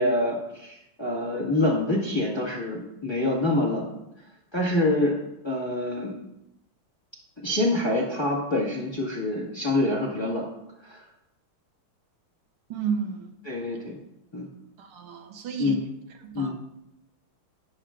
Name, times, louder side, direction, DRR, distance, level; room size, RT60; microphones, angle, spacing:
voice 1, 0.0-4.0 4.5-5.1 5.4-6.1 7.4-10.5 10.8-11.0 13.5-14.0 14.3-14.5 15.6-15.8 16.3-16.5, left 1 dB, 15° left, -3 dB, 1.6 m, -26 dB
voice 2, 12.7-13.3 14.8-15.8 16.2-16.5, right 6 dB, 80° right, 4 dB, 1.9 m, -32 dB
11.5 x 10.0 x 2.5 m, 0.85 s
omnidirectional pair, 2.4 m